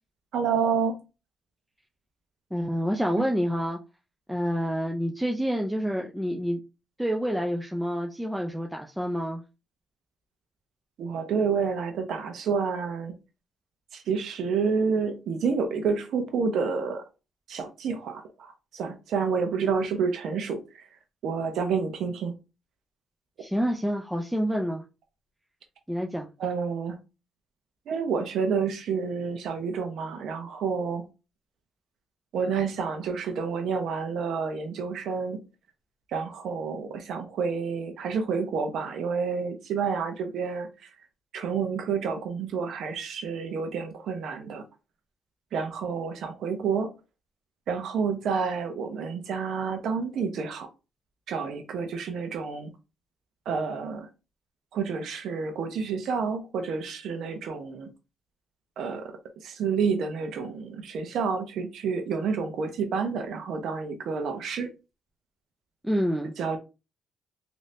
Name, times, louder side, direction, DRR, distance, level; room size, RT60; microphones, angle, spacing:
voice 1, 0.3-1.0 11.0-13.1 13.9-17.0 17.5-20.8 21.2-22.3 26.4-27.0 27.9-31.0 32.3-35.4 36.1-40.9 41.3-44.6 45.5-46.9 47.7-50.7 51.3-52.7 53.5-54.1 54.7-57.9 58.8-64.7 66.4-66.6, right 5 dB, 75° right, 0.6 m, -29 dB
voice 2, 2.5-3.8 4.3-6.6 7.0-9.4 23.4-24.8 25.9-26.3 65.8-66.3, equal, 5° right, 0.4 m, -28 dB
3.2 x 2.6 x 2.6 m
cardioid pair, 90°, 0 cm